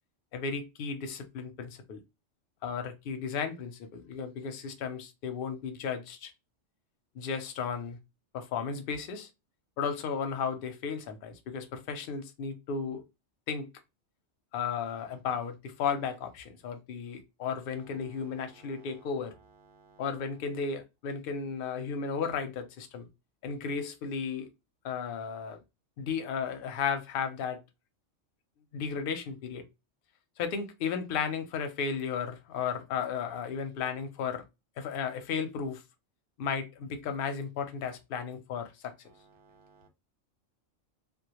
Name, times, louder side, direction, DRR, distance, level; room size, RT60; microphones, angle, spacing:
voice 1, 0.3-2.0 2.6-6.3 7.1-8.0 8.3-9.3 9.8-13.0 13.5-13.7 14.5-19.3 20.0-23.1 23.4-24.5 24.8-25.6 26.0-27.6 28.7-29.6 30.4-34.4 34.8-35.8 36.4-38.9, left 6 dB, 60° left, 0.6 m, -34 dB
voice 2, 18.5-18.9 19.7-20.0 39.4-39.9, right 4 dB, 45° right, 0.3 m, -59 dB
2.2 x 2.1 x 2.9 m
omnidirectional pair, 1.3 m